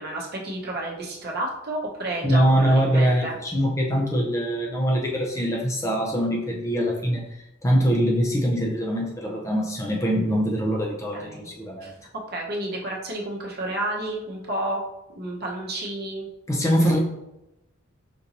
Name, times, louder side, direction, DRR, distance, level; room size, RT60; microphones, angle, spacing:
voice 1, 0.0-3.3 11.1-11.5 11.8-11.9 12.3-14.8 15.1-16.3 16.5-17.0, right 1 dB, 50° right, -2 dB, 0.8 m, -31 dB
voice 2, 2.2-11.9 16.5-17.0, equal, 15° left, -2 dB, 0.5 m, -23 dB
5.1 x 2.6 x 2.9 m, 0.91 s
head